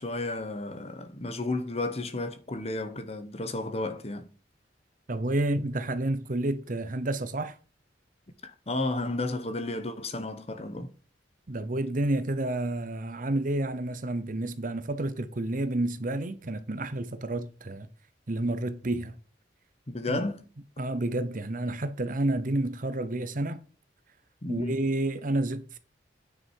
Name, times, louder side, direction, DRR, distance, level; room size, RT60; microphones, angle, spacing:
voice 1, 0.0-4.3 8.4-10.9 19.9-20.5 24.4-24.8, left 2 dB, 35° left, 1.1 m, -32 dB
voice 2, 5.1-7.6 11.5-17.9 18.3-19.1 20.1-20.2 20.8-23.6 24.5-25.8, right 1 dB, 45° right, 0.8 m, -30 dB
9.6 x 6.2 x 4.6 m
head